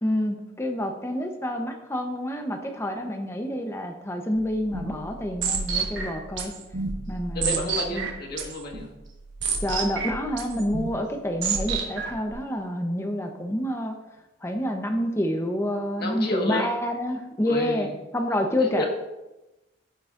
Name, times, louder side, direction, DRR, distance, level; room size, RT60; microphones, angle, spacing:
voice 1, 0.0-6.5 7.1-8.1 9.6-13.9 14.4-17.9 18.1-18.8, left 1 dB, 15° left, 4 dB, 0.8 m, -28 dB
sound 1, 4.4-12.3, right 5 dB, 65° right, 1.3 m, -31 dB
voice 2, 7.3-8.9 16.0-16.7 17.4-17.9 18.6-18.8, left 1 dB, 50° left, 1 dB, 1.6 m, -31 dB
14.0 x 6.2 x 2.5 m, 1.0 s
head